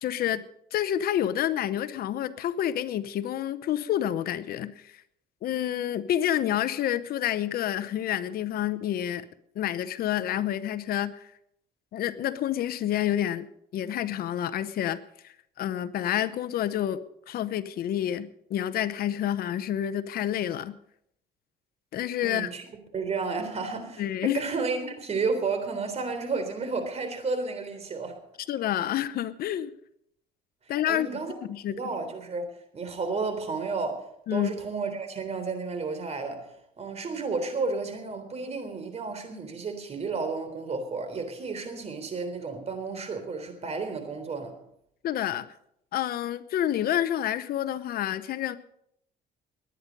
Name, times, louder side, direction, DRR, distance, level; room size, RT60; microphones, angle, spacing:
voice 1, 0.0-0.4 0.7-4.9 5.4-9.2 9.6-11.3 11.9-13.5 13.7-15.0 15.2-17.0 17.3-20.7 21.9-22.5 24.0-24.4 28.5-29.7 30.7-31.1 31.5-31.8 34.3-34.5 45.0-45.5 45.9-48.6, left 11 dB, 65° left, 0.8 m, -28 dB
voice 2, 22.2-22.7 22.9-28.2 30.9-31.3 31.7-34.0 34.3-44.5, right 4 dB, 40° right, 3.6 m, -32 dB
21.5 x 9.8 x 5.3 m
cardioid pair, 110°, 17 cm